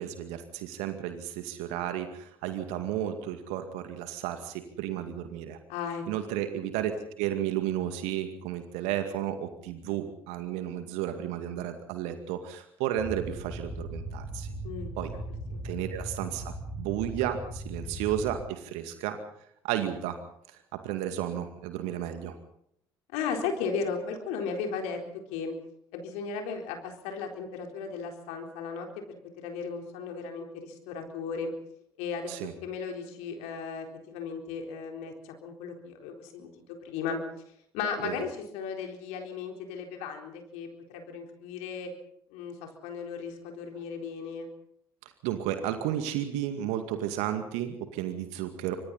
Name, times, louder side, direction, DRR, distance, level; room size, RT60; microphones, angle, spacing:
voice 1, 0.0-5.6 6.1-6.9 7.2-14.5 15.0-15.1 15.6-19.2 19.6-20.2 20.7-22.4 32.3-32.5 38.0-38.1 45.2-48.7, right 11 dB, 60° right, 8 dB, 2.2 m, -33 dB
voice 2, 5.7-6.0 14.6-14.9 15.5-15.6 23.1-25.0 25.3-25.5 25.9-31.5 32.0-32.4 32.6-37.2 37.7-41.9 42.3-44.5, left 5 dB, 60° left, 3 dB, 4.0 m, -36 dB
sound 1, 13.0-18.4, right 1 dB, 25° right, 7.5 m, -38 dB
27.5 x 25.0 x 4.2 m, 0.71 s
figure-of-eight pair, 55°, 13 cm